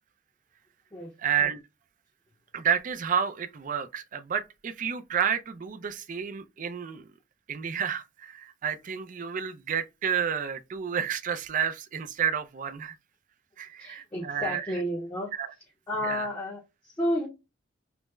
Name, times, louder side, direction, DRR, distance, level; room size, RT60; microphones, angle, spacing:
voice 1, 1.2-1.6 2.5-7.1 7.5-13.0 13.6-14.8 15.3-15.5 16.0-16.3, right 8 dB, 45° right, 0.4 m, -30 dB
voice 2, 13.8-15.3 15.9-16.6 16.8-17.3, equal, 15° left, 0.7 m, -31 dB
3.4 x 2.0 x 3.1 m
head